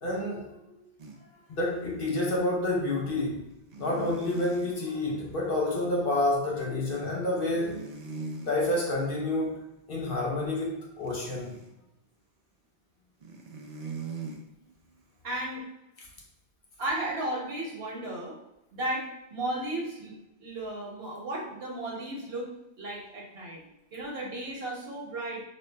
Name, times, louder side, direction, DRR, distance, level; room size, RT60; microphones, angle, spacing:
voice 1, 0.0-0.6 1.5-3.4 3.8-7.8 8.4-9.6 9.9-11.5, left 2 dB, 60° left, -3 dB, 1.0 m, -29 dB
sound 1, 1.0-1.2 1.8-1.9 3.7-4.8 7.5-8.6 11.0-11.7 13.2-14.4, right 4 dB, 50° right, 0.6 m, -40 dB
voice 2, 15.2-15.6 16.8-18.3 18.7-20.1 20.4-22.5 22.8-23.6 23.9-25.4, right 1 dB, 70° right, -3 dB, 1.3 m, -34 dB
4.2 x 2.5 x 3.3 m, 0.92 s
omnidirectional pair, 1.1 m